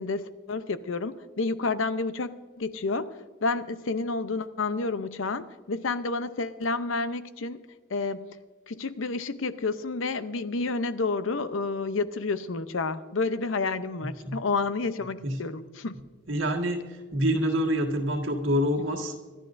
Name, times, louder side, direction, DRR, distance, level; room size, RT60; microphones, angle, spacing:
voice 1, 0.0-8.4 8.7-16.0, left 3 dB, 85° left, 12 dB, 0.7 m, -30 dB
voice 2, 16.3-16.8 17.1-19.2, equal, 80° right, 2 dB, 1.7 m, -26 dB
25.0 x 12.0 x 2.6 m, 1.4 s
head